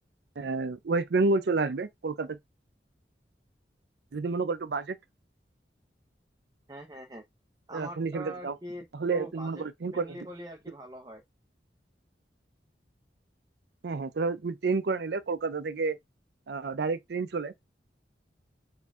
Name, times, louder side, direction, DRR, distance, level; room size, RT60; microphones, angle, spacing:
voice 1, 0.4-2.4 4.1-5.0 7.7-8.5 8.9-10.1 13.8-16.0 16.5-17.5, right 3 dB, 65° right, 0.5 m, -29 dB
voice 2, 6.7-7.2 7.7-9.6 9.9-11.2, equal, 20° right, 0.6 m, -43 dB
4.2 x 3.4 x 3.6 m
head